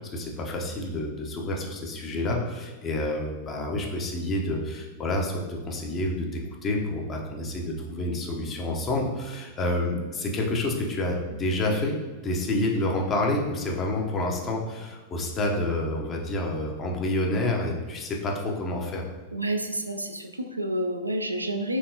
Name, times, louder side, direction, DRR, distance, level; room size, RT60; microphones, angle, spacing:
voice 1, 0.1-12.0 12.2-19.0, left 1 dB, 25° left, 0 dB, 0.7 m, -28 dB
voice 2, 19.3-21.8, right 1 dB, 85° right, 5 dB, 0.3 m, -29 dB
4.4 x 3.4 x 2.8 m, 1.3 s
figure-of-eight pair, 90°, 0 cm